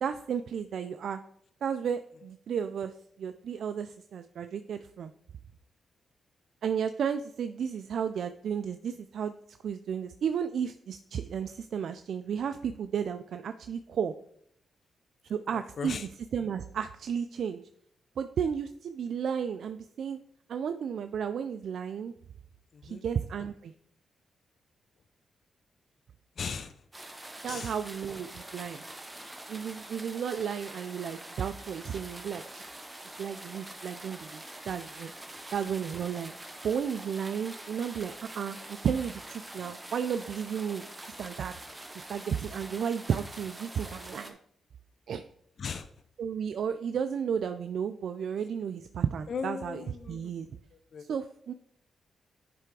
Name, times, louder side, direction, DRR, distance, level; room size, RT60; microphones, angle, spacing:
voice 1, 0.0-1.2 1.6-5.1 6.6-14.1 15.3-16.0 16.3-17.6 18.2-20.2 20.5-22.1 22.8-23.7 27.4-28.8 29.5-32.6 33.2-35.1 35.5-36.3 36.6-41.5 41.9-44.4 45.1-45.2 46.2-49.8 50.1-50.5 51.1-51.5, right 7 dB, 70° right, 9 dB, 0.3 m, -33 dB
voice 2, 15.5-16.1 22.7-23.0 26.4-26.9 27.5-27.8 45.6-46.0 49.3-50.4 50.7-51.1, left 6 dB, 55° left, 10 dB, 0.5 m, -38 dB
sound 1, 26.9-44.3, right 1 dB, 15° right, 1.1 m, -45 dB
10.0 x 3.4 x 4.6 m, 0.68 s
cardioid pair, 85°, 0 cm